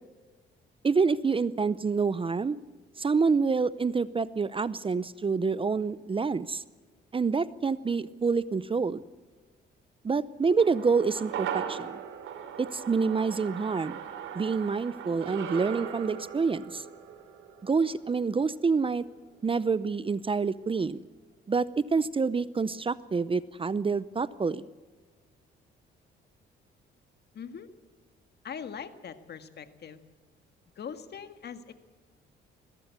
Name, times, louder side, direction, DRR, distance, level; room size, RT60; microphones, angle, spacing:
voice 1, 0.8-2.6 3.0-6.6 7.1-9.0 10.0-12.0 12.6-14.0 14.3-16.8 17.6-19.0 19.4-21.0 21.5-24.6, right 4 dB, 25° right, 18 dB, 0.7 m, -27 dB
sound 1, 10.6-19.1 19.4-19.5, right 8 dB, 80° right, 2.9 m, -39 dB
voice 2, 27.3-27.7 28.4-30.0 30.7-31.7, left 7 dB, 55° left, 10 dB, 1.8 m, -41 dB
22.0 x 16.5 x 8.2 m, 1.4 s
cardioid pair, 90°, 20 cm